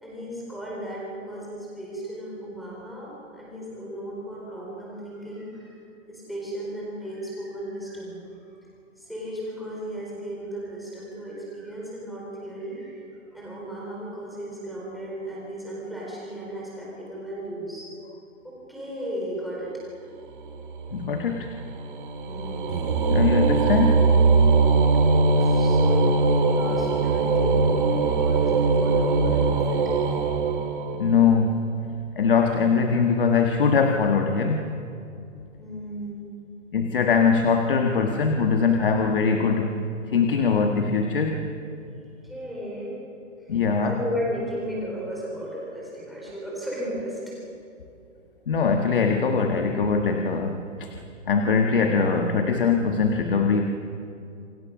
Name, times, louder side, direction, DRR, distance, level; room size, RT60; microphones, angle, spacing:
voice 1, 0.0-8.6 9.0-17.8 18.4-19.7 22.3-22.7 25.4-29.9 32.3-32.5 35.6-36.3 42.2-43.0 43.4-47.3, equal, ahead, -6 dB, 4.1 m, -35 dB
sound 1, 20.4-31.3, right 3 dB, 40° right, 2.7 m, -21 dB
voice 2, 20.9-21.5 23.1-24.1 30.9-31.9 32.2-34.8 36.7-41.4 43.5-44.0 48.5-50.9 51.3-53.6, left 5 dB, 45° left, 4 dB, 1.6 m, -22 dB
28.0 x 24.5 x 6.3 m, 2.6 s
hypercardioid pair, 180°, 39 cm